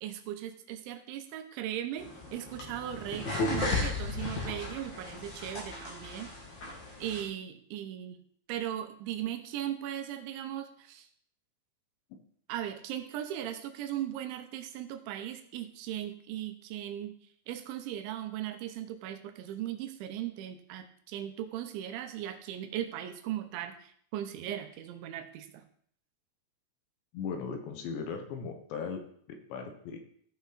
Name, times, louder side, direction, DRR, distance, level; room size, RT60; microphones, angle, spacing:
voice 1, 0.0-6.3 7.0-8.2 8.5-11.1 12.5-17.1 17.5-25.6, right 11 dB, 80° right, 8 dB, 3.1 m, -38 dB
sound 1, 2.0-7.2, left 3 dB, 45° left, 1.4 m, -35 dB
voice 2, 27.1-29.0 29.3-30.0, left 5 dB, 75° left, 5 dB, 3.3 m, -38 dB
15.0 x 6.1 x 4.0 m, 0.62 s
omnidirectional pair, 5.4 m